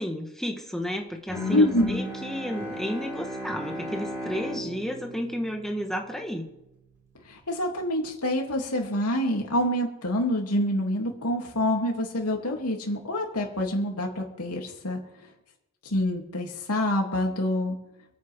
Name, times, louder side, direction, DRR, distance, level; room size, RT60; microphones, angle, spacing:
voice 1, 0.0-6.5, equal, ahead, 2 dB, 1.4 m, -32 dB
Bowed string instrument, 1.3-6.4, left 1 dB, 15° right, 5.1 m, -35 dB
voice 2, 1.5-1.9 7.3-15.0 15.8-17.8, left 1 dB, 90° left, 0 dB, 3.1 m, -26 dB
27.5 x 9.4 x 3.7 m, 0.90 s
head